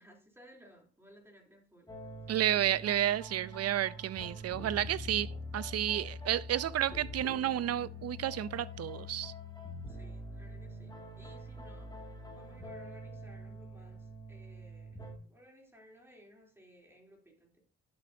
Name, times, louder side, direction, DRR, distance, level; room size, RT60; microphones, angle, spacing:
voice 1, 0.0-1.9 9.9-15.0 15.3-17.6, equal, 10° right, 3.4 m, -59 dB
sound 1, 1.9-15.2, left 1 dB, 15° left, 2.2 m, -45 dB
voice 2, 2.3-9.3, right 11 dB, 55° right, 0.6 m, -31 dB
sound 2, 5.2-5.5 5.8-6.2 6.6-7.0 7.5-7.7 8.4-8.7, right 2 dB, 85° right, 3.1 m, -61 dB
11.5 x 7.8 x 2.8 m
cardioid pair, 90°, 30 cm